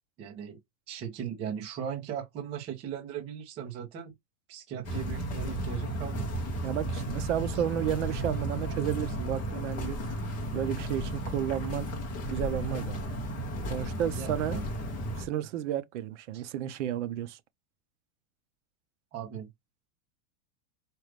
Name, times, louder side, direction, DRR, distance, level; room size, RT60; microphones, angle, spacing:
voice 1, 0.2-0.6 0.9-4.1 4.5-6.3 7.5-7.6 14.1-14.6 16.3-16.4 19.1-19.5, right 8 dB, 15° right, 0.5 m, -38 dB
sound 1, 4.8-15.2, right 1 dB, 20° left, 0.7 m, -34 dB
voice 2, 6.6-10.2 10.5-11.9 12.3-13.0 13.7-14.6 15.2-17.4, right 10 dB, 55° right, 0.6 m, -32 dB
4.5 x 2.4 x 3.2 m
supercardioid pair, 175°, 42 cm